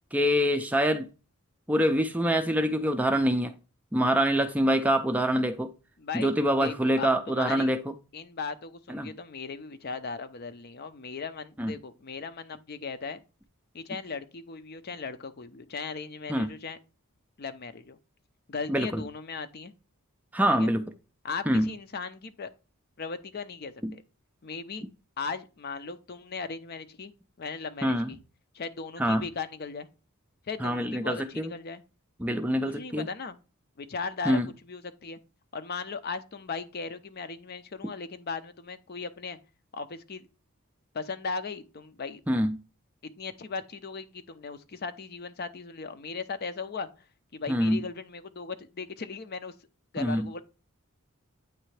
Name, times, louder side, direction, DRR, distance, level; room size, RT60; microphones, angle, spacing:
voice 1, 0.1-1.1 1.7-3.5 3.9-5.7 6.1-7.9 8.9-9.1 11.6-11.7 16.3-16.5 18.7-19.0 20.3-20.9 21.5-21.7 23.8-23.9 27.8-28.1 29.0-29.2 30.6-31.5 32.2-33.1 34.3-34.5 42.3-42.6 47.5-47.8 50.0-50.3, equal, 5° right, 0.4 m, -25 dB
voice 2, 6.0-6.3 6.6-7.7 8.1-13.2 13.7-16.8 17.4-18.0 18.5-19.7 20.5-20.7 21.2-22.5 23.0-24.0 24.4-24.8 25.2-27.1 27.4-28.2 28.5-29.9 30.5-31.8 32.7-33.4 33.8-34.4 34.7-35.2 35.5-39.4 39.7-40.3 40.9-42.2 43.0-46.9 47.3-49.5 49.9-50.4, left 4 dB, 45° left, 0.5 m, -37 dB
8.9 x 3.3 x 3.2 m
head